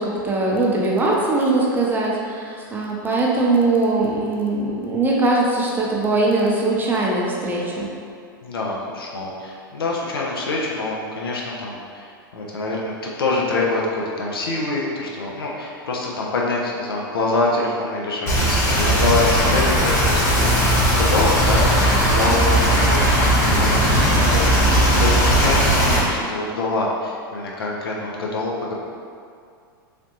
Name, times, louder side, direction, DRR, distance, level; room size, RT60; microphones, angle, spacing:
voice 1, 0.0-7.9, right 2 dB, 15° right, -3 dB, 0.6 m, -21 dB
voice 2, 8.4-28.7, left 3 dB, 85° left, -3 dB, 0.6 m, -25 dB
sound 1, 18.3-26.0, equal, 55° left, 1.3 m, -17 dB
3.3 x 2.5 x 2.8 m, 2.3 s
hypercardioid pair, 105°, 12 cm